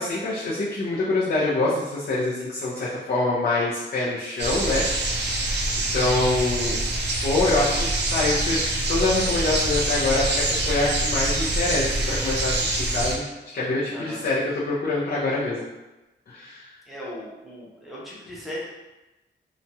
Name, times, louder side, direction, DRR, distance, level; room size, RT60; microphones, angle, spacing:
voice 1, 0.0-5.5 5.9-6.8 7.2-13.2 13.5-15.6 16.3-16.7, left 2 dB, 55° left, -8 dB, 0.6 m, -25 dB
sound 1, 4.4-13.2, right 2 dB, 65° right, 0.5 m, -25 dB
voice 2, 16.9-18.6, equal, ahead, -7 dB, 0.7 m, -37 dB
2.9 x 2.2 x 2.7 m, 1.1 s
wide cardioid pair, 160°, 20 cm